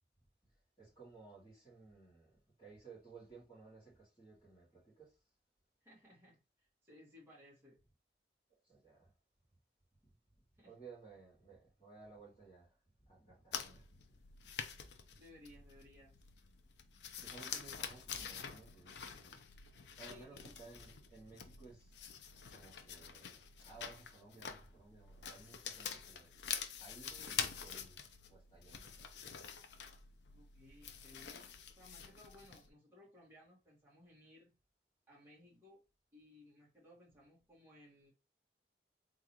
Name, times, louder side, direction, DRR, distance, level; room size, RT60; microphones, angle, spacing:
voice 1, 0.8-5.1 8.7-9.1 10.6-12.7 13.0-13.9 14.4-14.5 17.2-19.4 20.0-22.3 22.5-26.3 26.8-28.0 28.3-29.1, right 4 dB, 25° left, 2.3 m, -58 dB
voice 2, 5.8-7.8 10.6-10.8 15.2-16.1 20.1-20.6 30.3-34.5 35.1-35.8 36.1-38.1, left 1 dB, 15° right, 1.8 m, -61 dB
sound 1, 13.5-32.7, left 7 dB, 80° left, 0.6 m, -47 dB
3.7 x 3.7 x 3.0 m
head